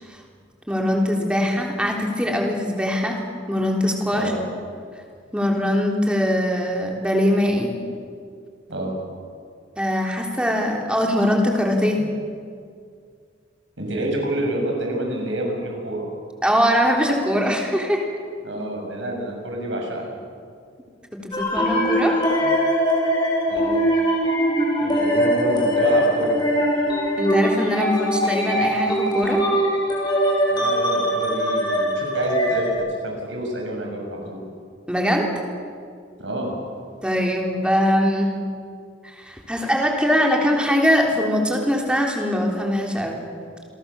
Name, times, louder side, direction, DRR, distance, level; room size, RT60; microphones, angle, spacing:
voice 1, 0.7-3.2 3.5-4.3 5.3-7.8 9.8-12.0 16.4-18.0 21.1-22.2 27.2-29.4 34.9-35.3 37.0-38.4 39.0-43.2, equal, 5° right, 0 dB, 3.6 m, -22 dB
voice 2, 13.8-16.1 18.4-20.1 22.4-22.5 23.5-23.8 24.8-26.3 30.5-32.7 33.0-34.4 36.2-36.5, right 1 dB, 75° right, 1 dB, 7.0 m, -28 dB
sound 1, 21.3-32.7, equal, 25° left, 5.8 m, -21 dB
29.0 x 21.5 x 7.1 m, 2.2 s
head